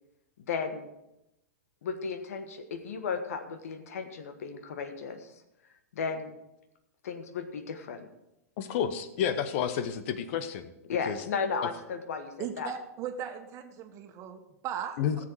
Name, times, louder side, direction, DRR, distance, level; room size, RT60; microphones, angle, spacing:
voice 1, 0.5-0.9 1.8-5.3 5.9-6.4 7.0-8.1 10.9-12.7, left 5 dB, 70° left, 8 dB, 1.4 m, -34 dB
voice 2, 8.6-10.7 11.1-11.2 15.0-15.2, left 8 dB, 55° left, 11 dB, 1.0 m, -30 dB
voice 3, 12.4-15.0, right 8 dB, 40° right, 6 dB, 1.5 m, -37 dB
14.0 x 7.6 x 4.7 m, 0.88 s
hypercardioid pair, 105°, 8 cm